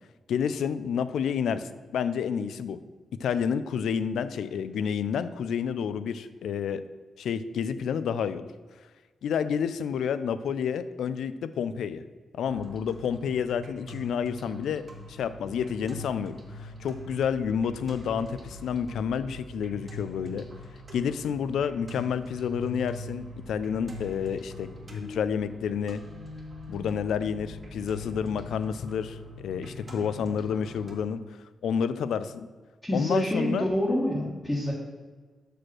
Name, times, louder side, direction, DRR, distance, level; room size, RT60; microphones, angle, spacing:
voice 1, 0.3-2.8 3.2-6.8 7.2-8.5 9.2-12.0 12.3-20.5 20.9-26.0 26.7-31.2 31.6-32.5 32.9-33.7, left 7 dB, 90° left, 13 dB, 0.4 m, -29 dB
sound 1, 12.5-31.0, left 1 dB, 30° right, 1.3 m, -43 dB
voice 2, 32.8-34.7, equal, 10° left, -6 dB, 1.2 m, -27 dB
6.4 x 5.0 x 6.0 m, 1.4 s
wide cardioid pair, 130°, 0 cm